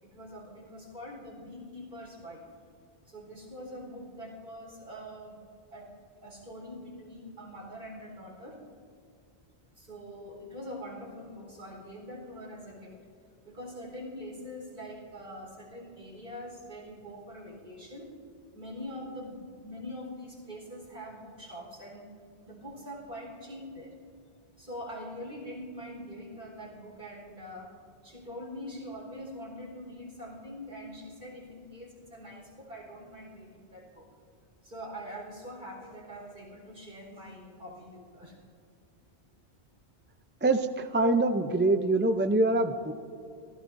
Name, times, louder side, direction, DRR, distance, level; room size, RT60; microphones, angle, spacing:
voice 1, 0.0-2.5 3.1-5.4 5.7-5.9 6.2-8.6 9.8-13.0 13.4-18.1 18.5-22.1 22.4-24.0 24.6-27.7 28.0-34.1 34.6-38.4, equal, 50° right, -2 dB, 4.4 m, -43 dB
voice 2, 40.4-42.9, right 2 dB, 15° right, 7 dB, 0.4 m, -25 dB
26.0 x 16.5 x 2.7 m, 2.4 s
omnidirectional pair, 1.1 m